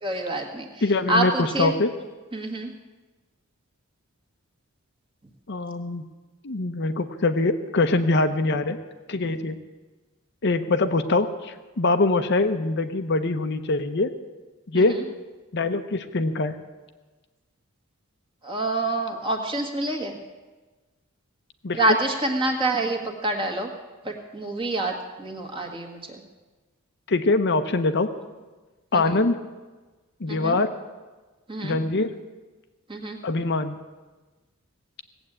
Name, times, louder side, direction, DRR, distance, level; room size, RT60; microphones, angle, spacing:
voice 1, 0.0-0.7 1.1-1.7 2.3-2.7 14.7-14.9 18.4-20.2 21.7-23.7 24.0-26.2 28.9-29.1 30.3-30.6 31.5-31.8 32.9-33.2, right 1 dB, 25° right, 2 dB, 1.6 m, -27 dB
voice 2, 0.8-1.9 5.5-6.1 6.4-8.8 9.1-9.6 10.4-14.1 14.7-15.0 15.5-16.6 21.6-21.8 27.1-28.1 28.9-29.4 30.2-30.7 31.6-32.1 33.2-33.7, left 2 dB, 50° left, 8 dB, 0.7 m, -23 dB
17.5 x 8.0 x 8.6 m, 1.3 s
head